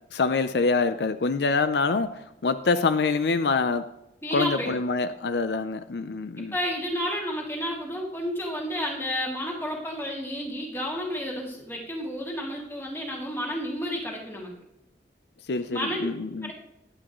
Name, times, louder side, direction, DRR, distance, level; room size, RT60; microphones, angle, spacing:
voice 1, 0.1-3.9 4.3-6.5 15.5-16.5, left 4 dB, 75° left, 11 dB, 0.5 m, -25 dB
voice 2, 4.2-4.8 6.5-14.5 15.7-16.1 16.4-16.5, equal, 15° left, -2 dB, 2.5 m, -31 dB
23.0 x 8.8 x 3.1 m, 0.89 s
head